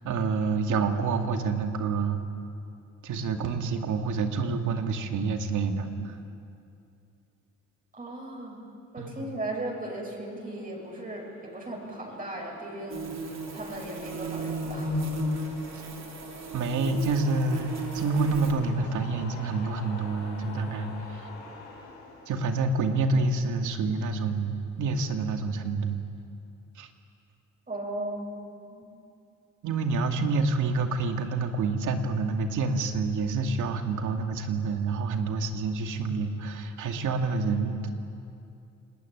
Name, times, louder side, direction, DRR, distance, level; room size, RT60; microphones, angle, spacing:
voice 1, 0.0-2.2 3.0-6.2 9.0-9.3 15.7-15.8 16.5-21.3 22.3-26.0 26.8-26.9 29.6-37.9, right 4 dB, 75° right, 4 dB, 2.5 m, -28 dB
voice 2, 7.9-8.6 8.9-13.1 13.5-14.9 27.7-28.3 28.7-28.8, right 1 dB, 30° right, -1 dB, 7.4 m, -36 dB
sound 1, 9.8-23.8, left 3 dB, 90° left, 6.0 m, -47 dB
sound 2, 12.9-18.5, right 1 dB, 60° right, 3.8 m, -33 dB
28.5 x 19.0 x 9.5 m, 2.6 s
cardioid pair, 90°, 30 cm